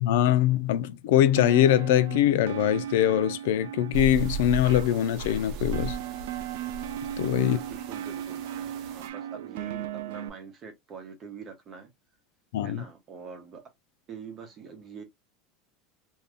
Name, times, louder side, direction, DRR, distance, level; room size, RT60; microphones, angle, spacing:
voice 1, 0.0-6.0 7.2-7.6 12.5-12.8, left 11 dB, 80° left, 0.4 m, -23 dB
sound 1, 1.4-10.3, right 11 dB, 85° right, 0.4 m, -37 dB
sound 2, 3.9-9.1, right 3 dB, 50° right, 0.7 m, -36 dB
voice 2, 7.4-11.9 12.6-13.6 14.1-15.0, right 6 dB, 30° right, 1.0 m, -44 dB
2.7 x 2.3 x 3.4 m
supercardioid pair, 155°, 0 cm